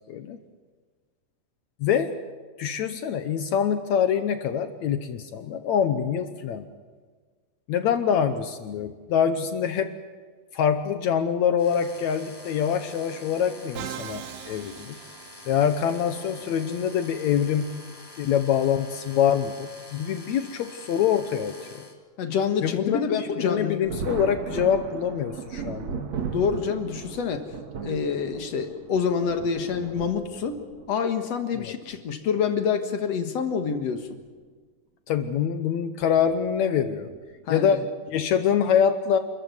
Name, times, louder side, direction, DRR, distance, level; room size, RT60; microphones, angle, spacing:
voice 1, 0.1-0.4 1.8-2.1 2.6-6.7 7.7-9.9 10.5-15.0 15.4-17.7 18.2-21.8 22.6-23.0 23.4-26.1 31.6-31.8 35.1-37.1 37.5-37.8 38.1-39.2, left 8 dB, 80° left, 9 dB, 1.6 m, -25 dB
sound 1, 11.6-21.9, left 1 dB, 10° left, 1.9 m, -46 dB
Musical instrument, 13.8-15.8, right 10 dB, 70° right, 2.4 m, -39 dB
voice 2, 22.2-23.8 26.3-27.5 27.8-30.6 30.9-34.1 37.5-37.8, left 6 dB, 55° left, 7 dB, 2.0 m, -27 dB
Thunder, 23.8-30.9 31.9-32.0 33.5-33.7 34.1-34.2 36.1-36.4 37.1-37.4, right 6 dB, 55° right, 2.5 m, -36 dB
29.5 x 14.5 x 9.5 m, 1.5 s
omnidirectional pair, 4.5 m